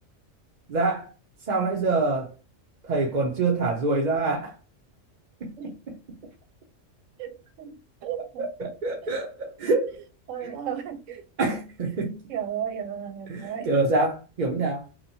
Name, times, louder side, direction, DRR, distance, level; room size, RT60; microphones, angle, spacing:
voice 1, 0.7-1.1 1.5-2.3 2.8-4.6 5.4-6.0 8.4-10.0 10.4-10.5 11.4-12.2 13.3-14.9, right 3 dB, 50° right, 0.6 m, -26 dB
voice 2, 7.2-8.4 10.3-11.2 12.3-13.7, right 9 dB, 85° right, 0.9 m, -34 dB
2.9 x 2.2 x 2.6 m
omnidirectional pair, 1.3 m